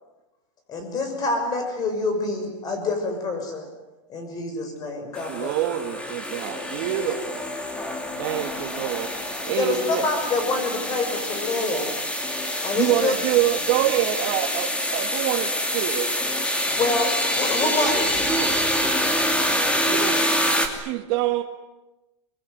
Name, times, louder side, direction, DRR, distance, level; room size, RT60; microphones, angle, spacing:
voice 1, 0.7-3.7 4.1-5.5 9.6-11.9 12.6-13.2 16.8-18.1, left 3 dB, 25° left, 6.3 m, -26 dB
sound 1, 5.1-20.7, left 1 dB, 5° left, 2.7 m, -26 dB
voice 2, 5.3-7.4 8.2-9.1 9.4-10.1 12.7-16.1 19.9-20.2 20.7-21.4, right 13 dB, 45° right, 2.0 m, -26 dB
voice 3, 17.6-18.7 19.7-20.2, right 4 dB, 10° right, 3.5 m, -32 dB
25.0 x 22.5 x 9.4 m
supercardioid pair, 160°, 16 cm